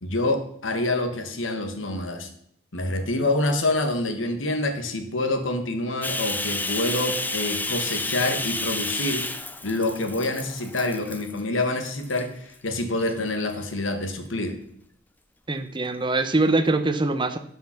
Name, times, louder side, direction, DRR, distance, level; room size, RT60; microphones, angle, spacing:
voice 1, 0.0-2.3 2.7-9.3 9.6-14.6, left 2 dB, 75° left, 6 dB, 1.5 m, -27 dB
Bathtub (filling or washing), 6.0-11.4 11.8-12.2 12.8-13.6, left 2 dB, 10° left, 0.6 m, -30 dB
voice 2, 15.5-17.4, right 2 dB, 25° right, 9 dB, 0.8 m, -23 dB
12.0 x 5.4 x 5.8 m, 0.69 s
head